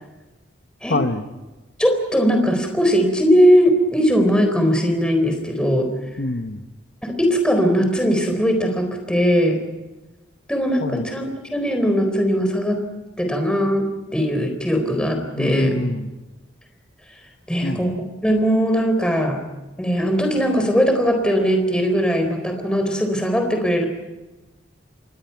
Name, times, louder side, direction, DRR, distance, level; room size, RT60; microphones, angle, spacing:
voice 1, 0.9-1.3 6.2-6.6 10.8-11.1 15.4-16.1 17.6-17.9, left 2 dB, 60° left, 7 dB, 1.1 m, -25 dB
voice 2, 1.8-5.9 7.0-9.6 10.5-12.8 13.2-15.8 17.5-17.9 18.2-19.4 19.8-23.9, equal, 5° left, 4 dB, 4.0 m, -19 dB
28.5 x 23.0 x 5.9 m, 1.1 s
head